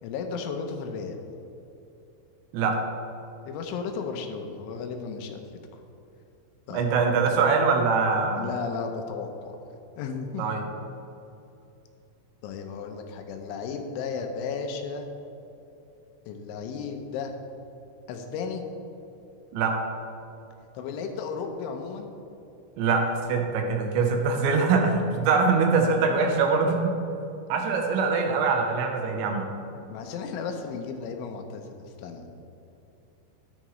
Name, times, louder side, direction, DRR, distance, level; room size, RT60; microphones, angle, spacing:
voice 1, 0.0-1.2 3.5-5.4 5.7-5.8 6.7-6.9 8.3-9.6 10.0-10.4 12.4-15.1 16.3-17.4 18.1-18.6 20.7-22.2 29.9-32.3, left 5 dB, 80° left, 4 dB, 3.2 m, -34 dB
voice 2, 6.7-8.5 10.4-10.6 19.5-19.8 22.8-27.0 27.5-29.5, right 4 dB, 75° right, 3 dB, 3.0 m, -23 dB
12.5 x 9.9 x 3.2 m, 2.8 s
omnidirectional pair, 5.5 m